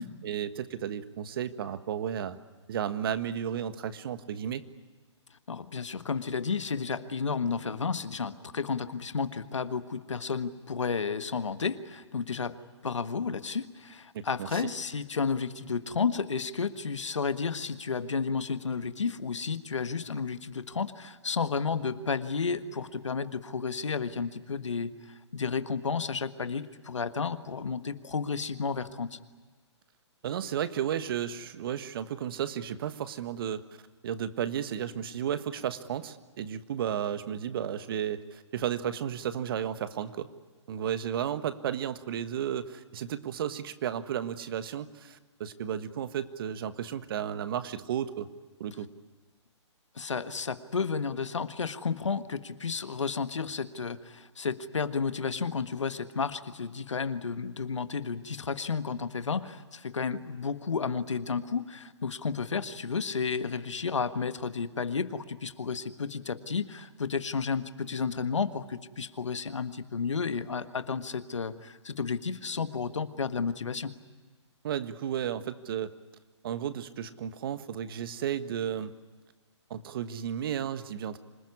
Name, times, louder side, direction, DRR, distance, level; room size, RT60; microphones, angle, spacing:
voice 1, 0.2-2.4 2.7-4.6 14.1-14.7 30.2-33.6 34.0-40.3 40.7-48.3 48.6-48.9 74.6-75.9 76.4-78.9 79.7-81.2, right 9 dB, 50° right, 11 dB, 1.5 m, -33 dB
voice 2, 5.5-12.6 12.8-24.9 25.3-29.2 49.9-73.9, left 5 dB, 80° left, 10 dB, 1.5 m, -32 dB
26.5 x 20.0 x 9.7 m, 1.4 s
figure-of-eight pair, 130°, 15 cm